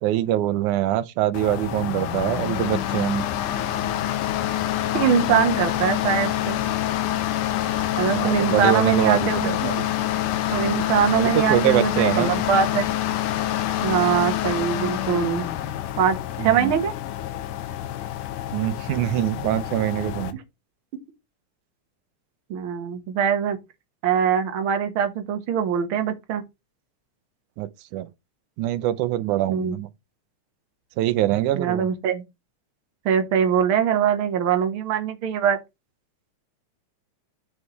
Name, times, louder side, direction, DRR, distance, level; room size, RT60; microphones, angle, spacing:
voice 1, 0.0-3.3 8.1-9.8 11.2-12.4 16.4-16.7 18.5-20.4 27.6-28.1 28.6-29.9 31.0-31.9, right 13 dB, 85° right, 2.1 m, -24 dB
sound 1, 1.3-20.3, left 12 dB, 90° left, 2.4 m, -26 dB
voice 2, 4.9-6.6 8.0-9.7 10.5-12.8 13.8-15.5 16.0-16.9 22.5-23.6 24.0-26.4 29.5-29.8 31.5-32.2 33.0-35.6, right 8 dB, 55° right, 1.7 m, -22 dB
9.0 x 6.4 x 3.1 m
omnidirectional pair, 3.5 m